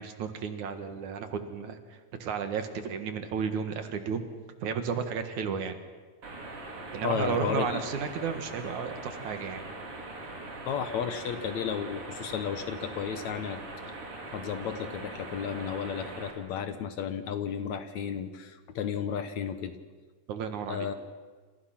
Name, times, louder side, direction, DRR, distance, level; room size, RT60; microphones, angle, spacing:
voice 1, 0.0-4.2 4.6-5.8 6.9-9.7 20.3-20.9, right 6 dB, 65° right, 7 dB, 2.9 m, -33 dB
sound 1, 6.2-16.3, right 2 dB, 40° right, 4.4 m, -41 dB
voice 2, 7.0-7.8 10.7-13.6 14.3-19.8 20.7-20.9, left 8 dB, 65° left, 9 dB, 2.2 m, -33 dB
28.5 x 27.5 x 5.9 m, 1.4 s
omnidirectional pair, 3.9 m